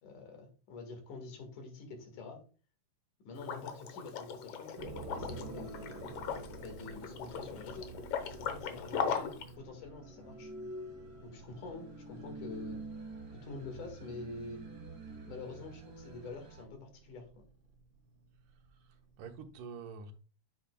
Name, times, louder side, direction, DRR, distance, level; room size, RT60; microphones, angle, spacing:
voice 1, 0.0-2.4 3.2-5.9 6.6-7.9 8.2-10.5 11.2-12.8 13.3-14.7 15.3-17.3, left 3 dB, 80° left, 3.2 m, -47 dB
Liquid, 3.4-9.5, left 7 dB, 65° left, 1.6 m, -39 dB
sound 1, 4.8-19.6, right 3 dB, 50° right, 2.7 m, -53 dB
sound 2, 5.1-16.6, right 2 dB, 35° right, 1.8 m, -49 dB
voice 2, 18.7-20.1, right 5 dB, 90° right, 2.5 m, -47 dB
8.7 x 7.1 x 2.2 m
omnidirectional pair, 3.5 m